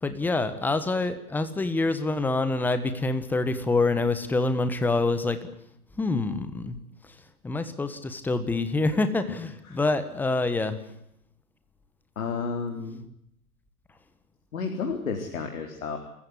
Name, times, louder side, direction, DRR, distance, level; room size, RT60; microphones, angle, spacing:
voice 1, 0.0-5.4 6.0-6.8 7.4-10.8, left 3 dB, 5° left, 11 dB, 1.3 m, -26 dB
voice 2, 12.2-13.0 14.5-16.0, left 5 dB, 60° left, 4 dB, 4.0 m, -31 dB
27.5 x 15.0 x 9.7 m, 0.77 s
hypercardioid pair, 135°, 45 cm